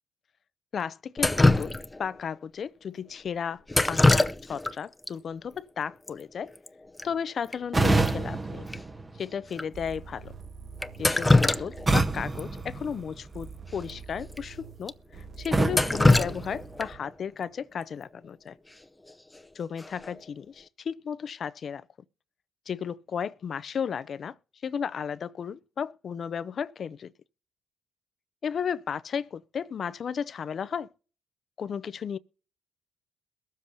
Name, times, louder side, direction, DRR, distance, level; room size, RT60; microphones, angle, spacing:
voice 1, 0.7-1.7 2.0-6.5 7.0-8.7 9.2-10.3 11.0-14.9 15.4-18.6 19.5-21.8 22.7-24.3 24.6-27.1 28.4-30.9 31.6-32.2, left 7 dB, 55° left, 0.5 m, -34 dB
Drip, 1.2-2.2 3.7-4.7 5.0-5.1 6.1-6.2 6.4-6.7 7.0-7.1 7.5-7.6 8.1-8.2 8.7-8.8 9.5-9.6 10.8-12.0 12.4-12.5 13.8-13.9 14.3-14.4 14.9-15.0 15.4-17.1 19.1-19.4 19.8-20.2, left 2 dB, 15° left, 0.7 m, -23 dB
sound 1, 7.7-9.7 11.9-13.6 15.5-17.1, right 2 dB, 25° right, 1.0 m, -28 dB
sound 2, 9.7-17.0, right 5 dB, 60° right, 2.0 m, -45 dB
22.0 x 7.5 x 2.7 m
supercardioid pair, 70°, 0 cm